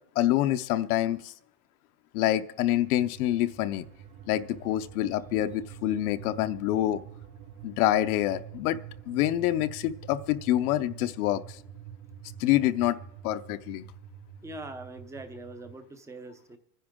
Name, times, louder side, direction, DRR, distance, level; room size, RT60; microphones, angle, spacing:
voice 1, 0.2-1.3 2.1-3.8 4.3-7.0 7.6-8.8 9.1-11.6 12.4-13.0 13.2-13.9, left 13 dB, 60° left, 11 dB, 0.8 m, -26 dB
sound 1, 2.5-15.8, right 9 dB, 80° right, 2.1 m, -47 dB
voice 2, 14.4-16.6, right 2 dB, 5° right, 8 dB, 0.6 m, -42 dB
26.0 x 10.0 x 3.6 m, 0.82 s
supercardioid pair, 160°, 49 cm